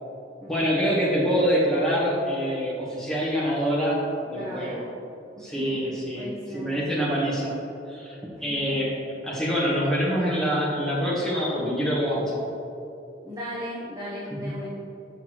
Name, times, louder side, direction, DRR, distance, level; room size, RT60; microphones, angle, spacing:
voice 1, 0.5-4.8 5.4-7.5 7.9-8.9 9.2-12.4 14.3-14.7, equal, 5° left, -6 dB, 1.2 m, -25 dB
voice 2, 4.3-4.8 5.4-5.8 6.1-6.7 8.4-8.7 13.2-14.7, equal, 20° right, -7 dB, 0.8 m, -37 dB
6.0 x 5.8 x 3.1 m, 2.7 s
head